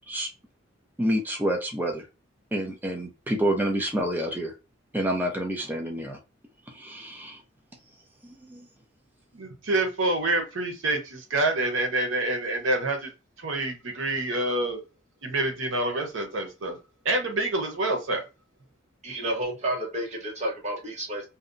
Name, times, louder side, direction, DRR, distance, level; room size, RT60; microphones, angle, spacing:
voice 1, 1.0-2.1 2.5-4.5 4.9-6.2 6.7-7.4 8.2-8.7, right 1 dB, 10° right, 0.5 m, -28 dB
voice 2, 9.3-13.1 13.4-14.8 15.2-16.8 17.0-18.2, right 2 dB, 90° right, 0.8 m, -27 dB
voice 3, 19.0-21.3, right 1 dB, 35° right, 1.0 m, -30 dB
2.7 x 2.1 x 2.5 m
head